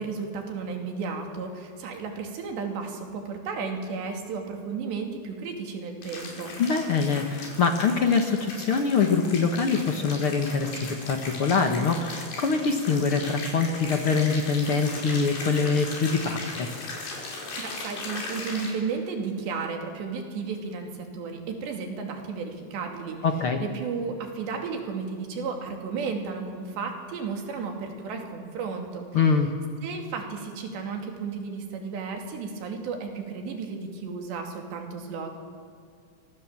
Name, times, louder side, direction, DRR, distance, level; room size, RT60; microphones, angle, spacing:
voice 1, 0.0-6.6 17.6-23.3 23.6-29.1 29.8-35.3, right 5 dB, 85° right, 3 dB, 4.9 m, -33 dB
sound 1, 6.0-18.7, left 3 dB, 85° left, 7.2 m, -38 dB
voice 2, 6.6-16.7 23.2-23.6 29.1-29.5, left 5 dB, 60° left, 4 dB, 1.4 m, -24 dB
29.5 x 25.5 x 7.5 m, 2.3 s
omnidirectional pair, 4.8 m